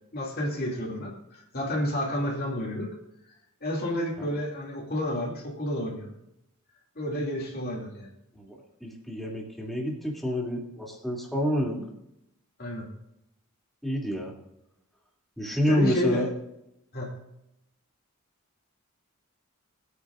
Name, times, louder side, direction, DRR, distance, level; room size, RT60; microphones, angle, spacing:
voice 1, 0.1-2.9 3.6-6.1 7.0-8.1 12.6-12.9 15.4-16.3 16.9-17.2, equal, 45° left, -3 dB, 2.8 m, -30 dB
voice 2, 8.8-11.9 13.8-14.3 15.4-16.3, equal, ahead, -3 dB, 2.9 m, -28 dB
21.0 x 9.4 x 2.6 m, 0.83 s
head